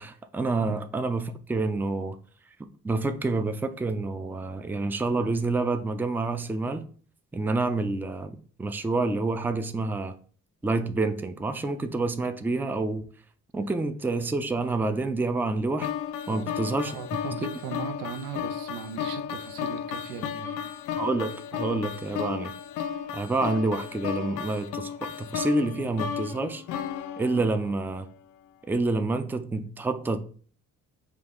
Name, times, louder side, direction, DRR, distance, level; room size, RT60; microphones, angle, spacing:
voice 1, 0.0-2.2 2.8-6.8 7.3-10.2 10.6-13.0 13.5-15.9 16.3-17.0 17.3-17.5 20.9-22.5 23.1-26.6 27.2-28.1 28.7-30.2, right 3 dB, 5° right, 0.3 m, -28 dB
sound 1, 15.8-28.0, left 8 dB, 85° left, 0.5 m, -34 dB
voice 2, 16.3-20.7, right 6 dB, 90° right, 0.6 m, -38 dB
5.2 x 2.3 x 3.7 m
cardioid pair, 90°, 30 cm